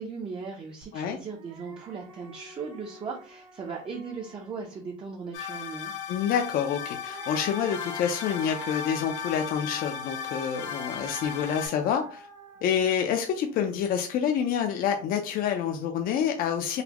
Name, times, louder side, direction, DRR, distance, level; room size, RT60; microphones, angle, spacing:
voice 1, 0.0-5.9, right 5 dB, 25° right, 0 dB, 0.6 m, -38 dB
sound 1, 0.8-0.9 1.3-4.9 6.6-13.9, right 3 dB, 75° right, 1.7 m, -46 dB
sound 2, 5.3-11.7, left 8 dB, 90° left, 0.8 m, -36 dB
voice 2, 6.1-12.2 12.6-16.8, left 8 dB, 50° left, 5 dB, 0.5 m, -27 dB
4.0 x 2.2 x 2.8 m, 0.39 s
cardioid pair, 130°, 19 cm